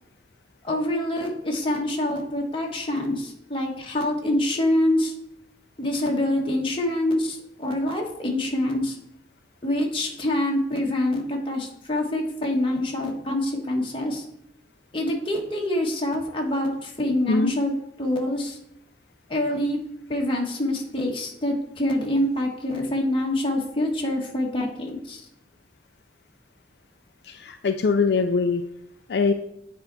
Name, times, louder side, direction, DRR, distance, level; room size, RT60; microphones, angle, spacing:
voice 1, 0.6-5.1 5.8-9.0 9.6-14.2 14.9-18.6 19.3-19.8 20.1-25.2, left 1 dB, 30° left, -1 dB, 1.4 m, -25 dB
voice 2, 27.2-28.6 29.1-29.3, left 4 dB, 65° left, 7 dB, 0.4 m, -22 dB
9.1 x 4.5 x 4.0 m, 0.81 s
head